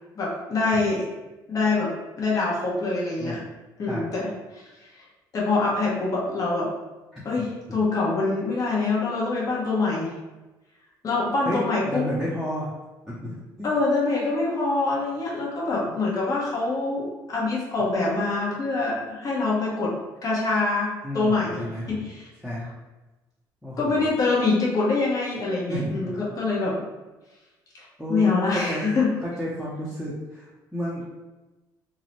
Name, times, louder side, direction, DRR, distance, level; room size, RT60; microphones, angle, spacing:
voice 1, 0.2-1.0 1.5-3.4 3.8-4.6 4.9-5.0 5.3-6.7 7.2-10.2 11.0-12.0 13.6-19.9 20.2-21.6 21.9-22.3 23.8-26.8 27.7-29.1, left 3 dB, 45° left, -5 dB, 0.9 m, -25 dB
voice 2, 11.2-12.7 13.1-13.7 15.9-16.0 21.0-22.1 22.4-22.7 23.6-24.0 25.7-26.2 28.0-28.9 29.2-31.0, equal, ahead, -8 dB, 0.6 m, -31 dB
2.5 x 2.0 x 3.0 m, 1.1 s
supercardioid pair, 90°, 8 cm